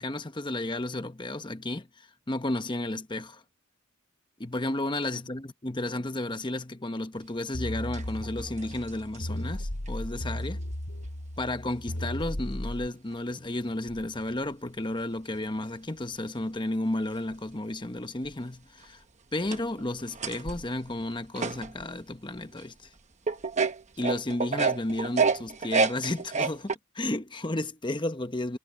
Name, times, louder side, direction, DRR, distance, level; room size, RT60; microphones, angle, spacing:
voice 1, 0.0-1.9 2.3-3.4 4.4-10.6 11.4-19.0 19.3-22.9 24.0-28.6, left 1 dB, 20° left, 1.0 m, -32 dB
sound 1, 7.5-12.9, left 1 dB, 70° left, 2.9 m, -35 dB
sound 2, 7.9-9.2 9.9-10.0 11.9-12.0 13.1-13.2 13.9-14.0 17.3-17.4 18.2-18.3 18.8-18.9 19.3-22.0 22.5-22.6 23.3-26.7, right 5 dB, 30° right, 1.0 m, -29 dB
head